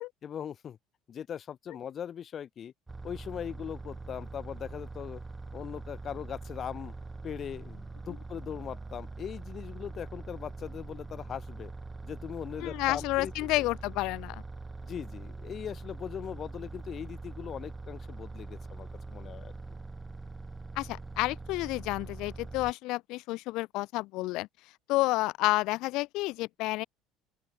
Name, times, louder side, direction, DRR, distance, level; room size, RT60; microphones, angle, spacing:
voice 1, 0.2-0.8 1.1-2.7 3.0-5.2 5.5-6.9 7.2-11.7 12.0-13.7 14.8-19.5, left 8 dB, 30° left, 3.8 m, -40 dB
sound 1, 2.9-22.7, right 3 dB, 10° right, 1.0 m, -43 dB
voice 2, 12.6-14.4 20.8-24.5 24.9-26.8, left 20 dB, 60° left, 0.3 m, -30 dB
open air
cardioid pair, 165°, 0 cm